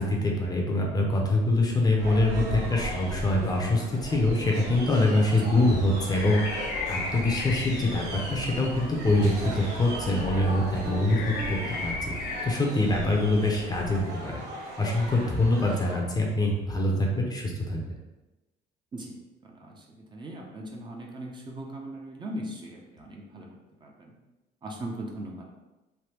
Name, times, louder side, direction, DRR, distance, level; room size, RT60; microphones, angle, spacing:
voice 1, 0.0-6.4 6.9-12.1 12.4-17.8, left 2 dB, 25° left, -1 dB, 0.6 m, -25 dB
sound 1, 2.0-16.0, right 1 dB, 70° right, 1.1 m, -38 dB
sound 2, 5.6-12.5, left 3 dB, 75° left, 0.6 m, -36 dB
Piano, 10.3-12.8, right 4 dB, 90° right, 0.5 m, -43 dB
voice 2, 19.4-23.5 23.8-24.2 24.6-25.5, right 1 dB, 25° right, -1 dB, 0.5 m, -39 dB
3.3 x 2.1 x 2.9 m, 1.1 s
cardioid pair, 110°, 17 cm